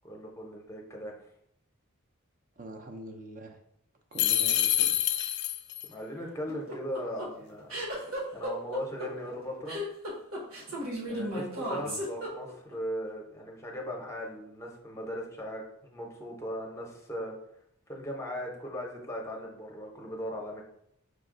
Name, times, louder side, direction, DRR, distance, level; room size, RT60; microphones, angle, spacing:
voice 1, 0.0-1.1 5.9-7.7 8.3-9.8 11.0-17.3 17.9-20.6, equal, 15° left, -1 dB, 0.8 m, -38 dB
voice 2, 2.6-3.6 4.1-5.2 5.9-6.0 11.7-12.0, right 1 dB, 40° right, 4 dB, 0.5 m, -44 dB
sound 1, 4.2-5.9, left 12 dB, 50° left, 0.3 m, -26 dB
sound 2, 6.5-12.7, right 1 dB, 70° right, 1.3 m, -35 dB
5.0 x 2.3 x 3.7 m, 0.73 s
head